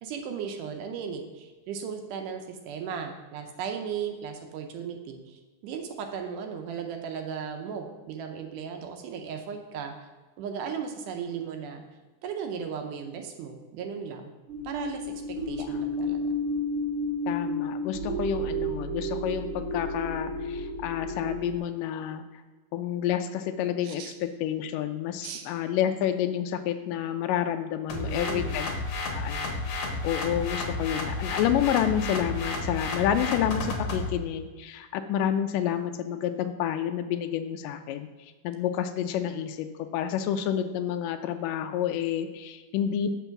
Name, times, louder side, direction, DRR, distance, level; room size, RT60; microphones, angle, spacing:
voice 1, 0.0-10.1 10.4-11.8 12.2-14.3 14.6-16.3 23.8-24.1 25.2-25.4 27.9-28.6, right 7 dB, 80° right, 4 dB, 2.2 m, -36 dB
sound 1, 14.5-21.6, left 1 dB, 50° right, 2.1 m, -31 dB
voice 2, 17.3-22.2 22.7-28.7 29.1-38.1 38.4-43.1, left 10 dB, 90° left, 8 dB, 2.2 m, -29 dB
sound 2, 27.9-34.1, left 2 dB, 60° left, 2.0 m, -32 dB
6.9 x 5.4 x 5.8 m, 1.3 s
omnidirectional pair, 3.7 m